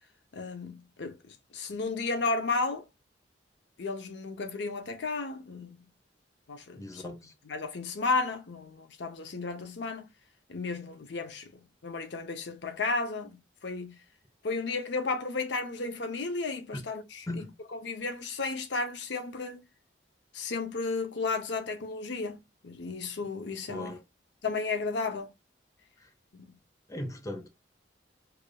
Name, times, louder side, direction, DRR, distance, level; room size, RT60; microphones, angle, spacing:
voice 1, 0.3-1.2 1.5-2.8 3.8-5.8 6.5-6.8 7.5-10.0 10.5-11.5 11.8-13.4 13.6-14.0 14.4-17.5 17.7-19.6 20.3-22.4 22.6-23.9 24.4-25.3, left 3 dB, 65° left, 0.6 m, -33 dB
voice 2, 6.7-7.3 16.7-16.8 17.3-17.5 23.7-24.0 26.0-26.1 26.9-27.5, left 1 dB, 15° left, 0.6 m, -38 dB
4.8 x 2.5 x 2.2 m
head